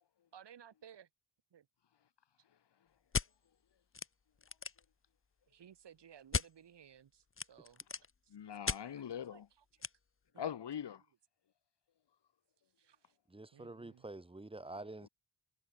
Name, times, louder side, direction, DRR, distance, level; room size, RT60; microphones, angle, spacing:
voice 1, 0.3-1.1 1.5-1.7 5.5-7.8 8.2-8.4 8.9-9.0 9.3-9.6 10.3-10.5 12.8-13.2 13.5-14.0, right 9 dB, 65° right, 5.2 m, -58 dB
sound 1, 3.1-3.3 3.9-4.1 4.4-4.9 6.3-6.5 7.3-8.1 8.7-8.8 9.8-9.9, left 5 dB, 30° left, 2.0 m, -36 dB
voice 2, 8.3-9.5 10.4-11.0, left 9 dB, 65° left, 5.0 m, -42 dB
voice 3, 13.3-15.1, right 2 dB, 10° right, 2.2 m, -47 dB
cardioid pair, 115°, 45 cm